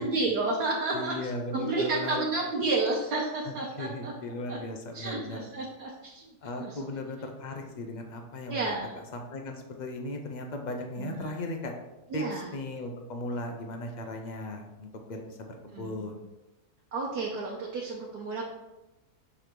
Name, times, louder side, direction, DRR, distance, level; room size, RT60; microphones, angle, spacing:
voice 1, 0.0-4.1 4.5-4.6 4.9-6.3 6.6-6.9 8.5-8.9 11.0-11.3 12.1-12.5 15.7-16.1 16.9-18.4, right 3 dB, 85° right, -3 dB, 1.4 m, -31 dB
voice 2, 0.9-2.2 3.5-5.4 6.4-8.6 8.9-11.7 12.1-16.3, left 1 dB, 65° left, 3 dB, 0.4 m, -37 dB
6.1 x 3.4 x 4.5 m, 1.0 s
omnidirectional pair, 1.7 m